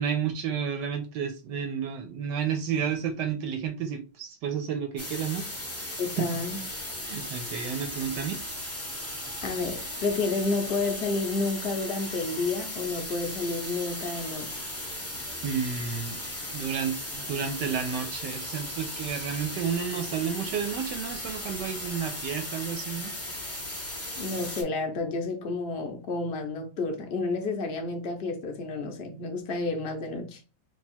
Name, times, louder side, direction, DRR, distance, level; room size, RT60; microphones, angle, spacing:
voice 1, 0.0-5.4 5.8-6.3 7.0-8.4 15.4-16.2 16.5-23.1, right 7 dB, 75° right, 1.1 m, -31 dB
sound 1, 5.0-24.6, left 1 dB, 15° left, 0.6 m, -37 dB
voice 2, 6.0-6.6 9.4-14.6 24.2-30.4, left 3 dB, 70° left, 0.6 m, -30 dB
3.4 x 2.3 x 4.3 m
omnidirectional pair, 2.2 m